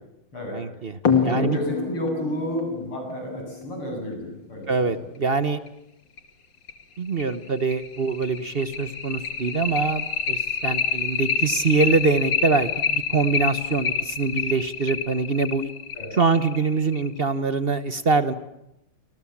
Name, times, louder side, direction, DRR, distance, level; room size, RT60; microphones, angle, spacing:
voice 1, 0.5-1.6 4.7-5.6 7.0-15.7 16.1-18.3, right 4 dB, 40° right, 12 dB, 0.9 m, -24 dB
sound 1, 1.0-4.2 5.7-5.8 6.2-6.3 6.7-6.8 7.2-17.2, left 6 dB, 60° left, 2.9 m, -27 dB
voice 2, 1.3-5.0 15.9-16.1, equal, 90° left, 2 dB, 8.8 m, -31 dB
28.5 x 26.0 x 7.4 m, 0.84 s
omnidirectional pair, 2.3 m